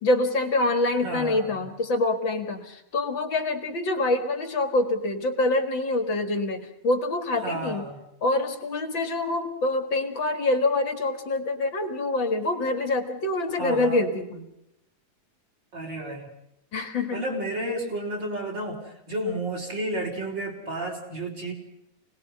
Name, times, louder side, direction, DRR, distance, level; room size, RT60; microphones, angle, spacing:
voice 1, 0.0-7.8 8.2-14.4 16.7-17.2, left 2 dB, 40° left, 7 dB, 2.3 m, -25 dB
voice 2, 1.0-1.7 7.4-8.0 13.6-14.0 15.7-16.3 17.1-21.5, right 1 dB, 30° right, 1 dB, 5.3 m, -32 dB
27.0 x 20.0 x 5.7 m, 0.82 s
omnidirectional pair, 3.8 m